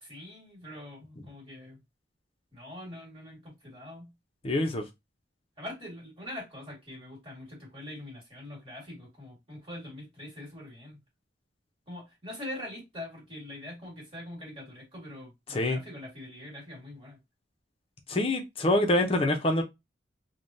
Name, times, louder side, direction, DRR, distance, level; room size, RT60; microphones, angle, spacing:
voice 1, 0.0-1.8 2.5-4.1 5.6-11.0 11.9-17.2, left 1 dB, 30° right, 1.5 m, -43 dB
voice 2, 4.4-4.8 15.5-15.8 18.1-19.6, left 1 dB, 30° left, 0.5 m, -25 dB
3.4 x 2.2 x 2.5 m
head